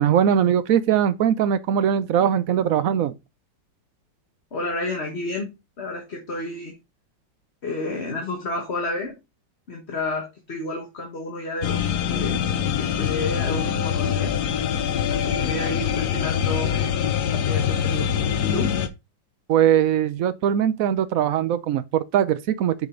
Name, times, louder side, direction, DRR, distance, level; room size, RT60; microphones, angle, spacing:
voice 1, 0.0-3.1 19.5-22.7, right 9 dB, 65° right, 0.9 m, -21 dB
voice 2, 4.5-5.5 5.8-6.7 7.6-9.1 9.7-12.4 12.8-14.4 14.8-17.0 17.3-18.1 18.4-18.7, left 2 dB, 35° left, 1.6 m, -30 dB
sound 1, 11.6-18.9, left 8 dB, 60° left, 1.2 m, -24 dB
7.7 x 5.2 x 3.8 m
omnidirectional pair, 2.1 m